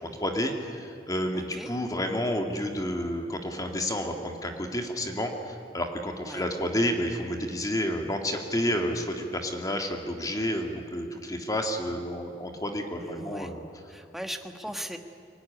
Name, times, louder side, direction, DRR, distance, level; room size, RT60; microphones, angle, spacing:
voice 1, 0.0-13.6, equal, 20° left, 4 dB, 1.9 m, -30 dB
voice 2, 1.3-1.7 6.2-6.4 13.0-13.5 13.9-15.0, equal, ahead, 6 dB, 1.4 m, -38 dB
24.0 x 17.5 x 9.8 m, 2.7 s
head